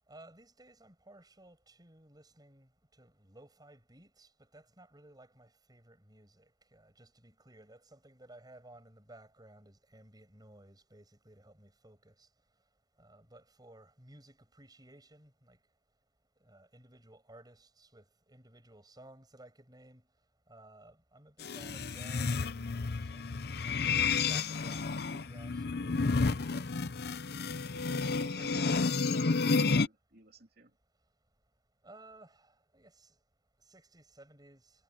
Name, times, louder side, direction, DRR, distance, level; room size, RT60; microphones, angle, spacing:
voice 1, 0.1-2.7 3.0-12.3 13.0-15.6 16.4-20.0 20.5-24.0 24.2-25.6 31.8-33.1 33.7-34.7, right 1 dB, 25° right, 7.4 m, -57 dB
sound 1, 21.4-29.9, left 4 dB, 60° left, 0.7 m, -31 dB
voice 2, 27.6-30.8, right 2 dB, 60° right, 3.4 m, -57 dB
head